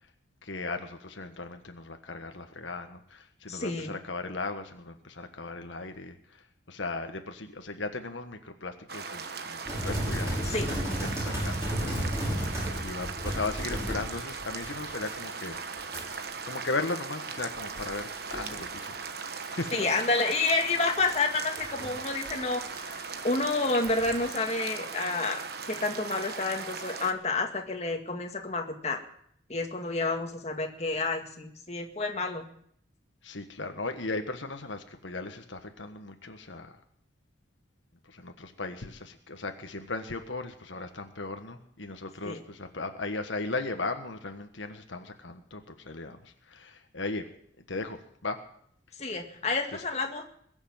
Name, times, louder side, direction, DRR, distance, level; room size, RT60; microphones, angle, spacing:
voice 1, 0.4-15.6 16.5-19.2 19.5-19.7 33.2-36.8 38.0-47.3 47.7-48.4 49.7-49.8, left 3 dB, 85° left, 6 dB, 1.5 m, -37 dB
voice 2, 3.5-3.9 10.4-10.7 19.7-25.4 25.7-29.0 29.5-32.4 42.2-42.4 49.0-50.2, left 3 dB, 35° left, 3 dB, 2.0 m, -29 dB
sound 1, 8.9-27.1, right 5 dB, 55° right, 1.3 m, -39 dB
sound 2, 9.6-15.2 15.5-16.2 17.3-18.7 19.0-19.1 20.9-22.4 22.6-22.7 23.8-24.2, equal, 15° right, 6.8 m, -33 dB
21.5 x 7.2 x 8.9 m, 0.65 s
head